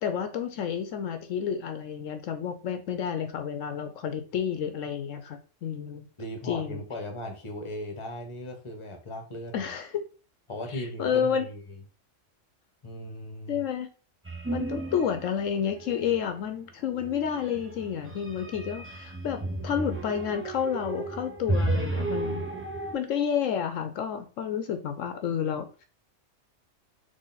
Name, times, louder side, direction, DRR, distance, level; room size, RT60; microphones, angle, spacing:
voice 1, 0.0-6.1 6.4-6.8 9.5-10.0 10.7-11.5 13.5-13.9 14.5-22.5 22.9-25.8, left 8 dB, 75° left, 8 dB, 1.0 m, -30 dB
voice 2, 6.2-9.7 10.5-11.8 12.8-13.6, left 1 dB, 25° left, 4 dB, 0.9 m, -38 dB
sound 1, 14.3-15.3 15.6-16.2 16.9-22.9, right 2 dB, 20° right, 0.4 m, -33 dB
3.9 x 3.4 x 3.9 m, 0.36 s
omnidirectional pair, 1.4 m